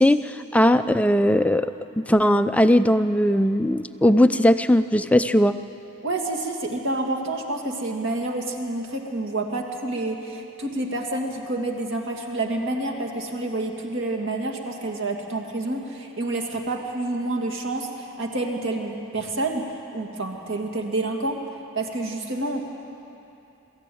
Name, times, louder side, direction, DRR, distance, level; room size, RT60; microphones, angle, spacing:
voice 1, 0.0-1.7 2.1-5.5, left 1 dB, 5° left, 10 dB, 0.4 m, -19 dB
voice 2, 6.0-19.7 19.9-21.4 21.7-22.7, right 2 dB, 60° right, 2 dB, 2.3 m, -28 dB
23.0 x 14.0 x 9.3 m, 2.8 s
head